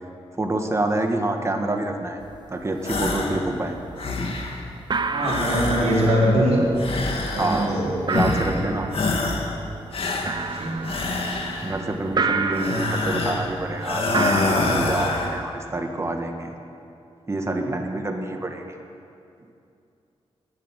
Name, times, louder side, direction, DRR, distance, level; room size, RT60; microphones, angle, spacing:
voice 1, 0.4-2.2 2.5-3.7 7.4-7.8 8.1-8.9 11.6-16.5 17.3-18.8, right 2 dB, 25° right, 3 dB, 1.6 m, -27 dB
sound 1, 2.2-2.4 2.6-3.2 3.5-4.1 4.4-4.5 4.8-15.4, right 4 dB, 45° right, 0.9 m, -31 dB
sound 2, 2.8-3.4 3.8-4.6 5.2-6.3 6.8-7.8 8.1-8.6 8.9-9.6 9.9-11.8 12.5-13.5 13.8-15.3, left 3 dB, 60° left, 2.0 m, -26 dB
voice 2, 5.1-6.6 7.3-7.9 10.5-10.9, equal, 80° right, -6 dB, 5.1 m, -22 dB
14.0 x 10.5 x 9.1 m, 2.6 s
wide cardioid pair, 95°, 11 cm